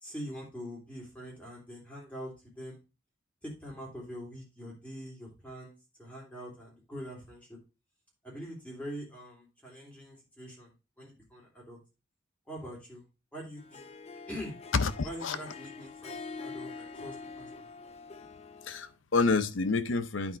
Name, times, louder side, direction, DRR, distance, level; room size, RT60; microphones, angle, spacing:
voice 1, 0.0-2.8 3.4-7.6 8.2-11.8 12.5-13.0 13.3-13.9 14.3-14.6 15.0-17.8, equal, 5° left, 3.0 m, -44 dB
Harp, 13.6-18.9, left 4 dB, 35° left, 0.6 m, -45 dB
voice 2, 14.7-15.4 18.7-20.4, left 4 dB, 85° left, 0.7 m, -28 dB
9.9 x 4.2 x 4.5 m
head